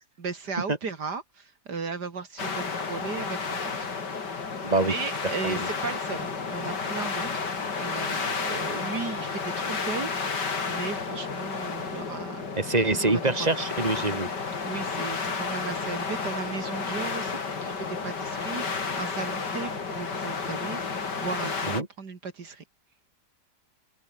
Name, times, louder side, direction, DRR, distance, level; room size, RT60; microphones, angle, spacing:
voice 1, 0.2-3.9 4.2-4.3 4.8-7.4 7.8-10.1 10.7-12.4 12.9-13.5 14.6-22.6, right 5 dB, 75° right, 3.0 m, -36 dB
sound 1, 2.4-21.8, left 5 dB, 85° left, 3.4 m, -32 dB
voice 2, 4.6-4.9 5.4-5.6 12.6-14.4 21.7-21.9, right 2 dB, 25° right, 3.6 m, -25 dB
open air
omnidirectional pair, 1.8 m